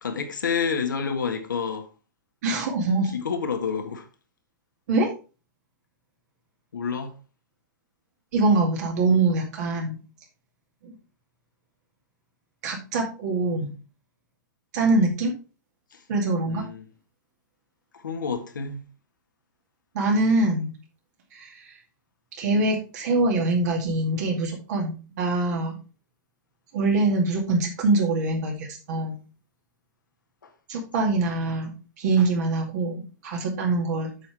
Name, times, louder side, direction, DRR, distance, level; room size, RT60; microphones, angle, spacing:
voice 1, 0.0-1.9 3.1-4.1 6.7-7.2 15.9-16.0 16.4-16.9 17.9-18.9 30.4-30.5, left 6 dB, 90° left, 1.7 m, -29 dB
voice 2, 2.4-3.1 4.9-5.1 8.3-10.0 10.8-10.9 12.6-13.7 14.7-15.3 16.1-16.7 19.9-20.7 21.3-21.5 22.4-25.8 26.7-29.2 30.7-34.1, right 2 dB, 60° right, 2.4 m, -24 dB
8.3 x 6.0 x 3.5 m
hypercardioid pair, 125°, 10 cm